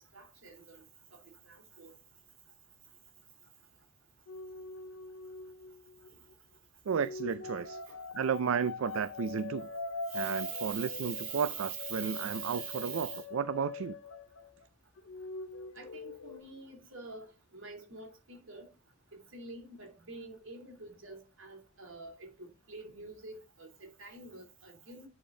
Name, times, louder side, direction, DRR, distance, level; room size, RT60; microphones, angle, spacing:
voice 1, 0.1-0.8 1.1-1.2 1.4-1.9 7.9-8.0 10.1-13.2 15.7-17.3 17.5-18.7 19.1-25.1, right 5 dB, 70° right, 2.9 m, -45 dB
sound 1, 4.3-6.3 6.9-14.7 15.0-16.4, left 3 dB, 75° left, 0.7 m, -43 dB
voice 2, 6.9-7.8 8.1-9.7 10.1-14.0, right 6 dB, 90° right, 0.4 m, -33 dB
10.5 x 4.4 x 3.8 m
head